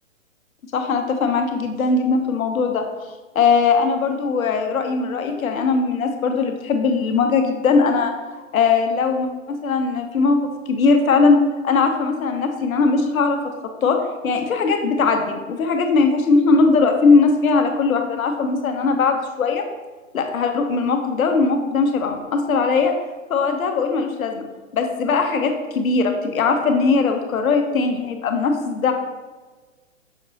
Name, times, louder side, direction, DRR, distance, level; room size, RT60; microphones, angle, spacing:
voice 1, 0.7-2.8 3.3-8.1 8.5-10.4 10.7-13.5 13.8-19.7 20.1-22.9 23.3-24.4 24.7-28.9, left 4 dB, 90° left, 5 dB, 0.8 m, -19 dB
5.9 x 3.0 x 2.7 m, 1.3 s
hypercardioid pair, 170°, 40 cm